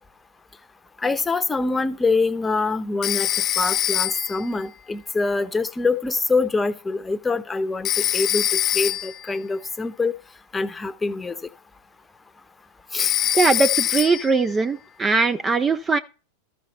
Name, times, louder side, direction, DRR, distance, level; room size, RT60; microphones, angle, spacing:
voice 1, 1.0-3.3 3.6-10.1 10.5-11.3 12.9-13.2, left 3 dB, 15° left, 0.9 m, -24 dB
Telephone, 3.0-4.4 7.8-9.2 13.0-14.4, left 13 dB, 35° left, 0.6 m, -23 dB
voice 2, 13.3-16.0, right 4 dB, 20° right, 0.5 m, -20 dB
13.5 x 5.8 x 4.2 m
hypercardioid pair, 95°, 0 cm